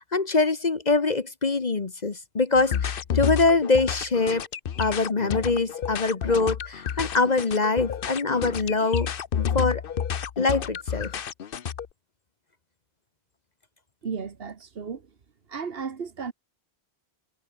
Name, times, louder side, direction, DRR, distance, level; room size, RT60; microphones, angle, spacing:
voice 1, 0.0-4.4 4.8-9.1 9.5-9.8 10.4-11.1, left 3 dB, 40° left, 1.3 m, -24 dB
sound 1, 2.6-11.9, left 8 dB, 60° left, 1.0 m, -30 dB
voice 2, 14.0-15.1 15.5-16.3, right 5 dB, 60° right, 1.6 m, -34 dB
omnidirectional pair, 1.1 m